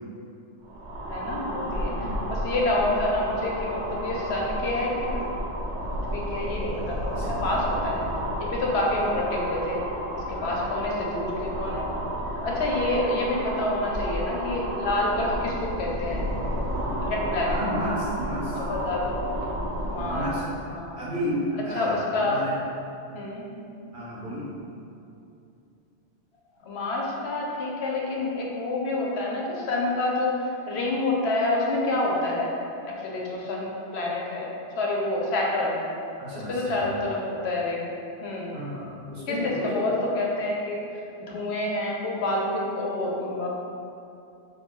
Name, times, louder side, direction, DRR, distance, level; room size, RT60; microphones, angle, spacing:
sound 1, 0.6-20.5, equal, 80° right, 0.9 m, -31 dB
voice 1, 1.1-5.2 6.1-8.0 8.4-9.8 10.1-11.9 12.4-16.3 17.0-17.6 18.5-19.1 19.9-20.3 20.7-21.0 21.5-22.4 23.1-23.5 26.6-32.6 32.8-35.8 36.3-37.8 38.2-38.5 39.3-43.5, left 2 dB, 70° left, -2 dB, 0.8 m, -28 dB
voice 2, 10.3-10.8 17.5-18.5 20.1-20.6 20.9-22.5 23.9-24.5 36.2-37.0 38.5-39.9, equal, 55° right, -8 dB, 0.7 m, -32 dB
3.1 x 2.3 x 3.5 m, 2.7 s
omnidirectional pair, 1.2 m